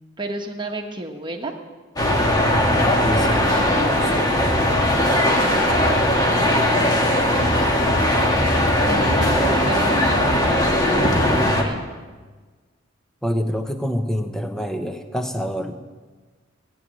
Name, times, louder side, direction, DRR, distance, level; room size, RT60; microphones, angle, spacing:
voice 1, 0.2-1.5 2.0-2.7 5.3-6.1 7.1-7.6 8.5-11.9, right 2 dB, 25° right, 3 dB, 1.4 m, -32 dB
sound 1, 2.0-11.6, left 1 dB, 20° left, 1.6 m, -19 dB
voice 2, 3.0-4.9 13.2-15.8, equal, 5° left, 6 dB, 0.9 m, -27 dB
17.0 x 9.2 x 7.7 m, 1.4 s
head